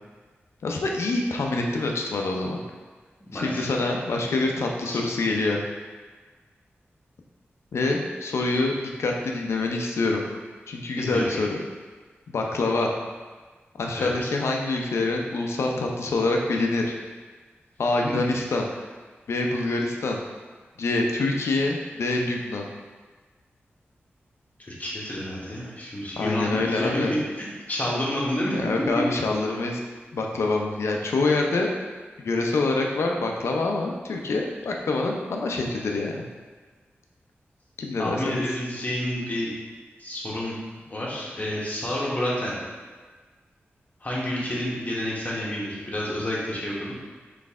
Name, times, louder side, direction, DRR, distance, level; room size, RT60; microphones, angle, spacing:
voice 1, 0.6-2.6 3.3-5.6 7.7-8.7 9.0-10.2 10.7-11.6 12.3-12.9 13.8-17.0 17.8-18.7 19.3-20.2 20.8-22.6 26.2-27.1 28.5-29.8 30.1-31.7 32.2-36.2 37.8-38.4, left 2 dB, 80° left, 1 dB, 0.6 m, -25 dB
voice 2, 3.2-3.7 4.9-5.0 11.0-11.4 13.9-14.1 24.7-27.1 27.3-28.6 28.9-29.0 38.0-39.5 40.0-40.6 40.9-42.6 44.0-46.9, left 1 dB, 35° left, -5 dB, 1.3 m, -29 dB
4.0 x 3.3 x 3.6 m, 1.4 s
cardioid pair, 55°, 4 cm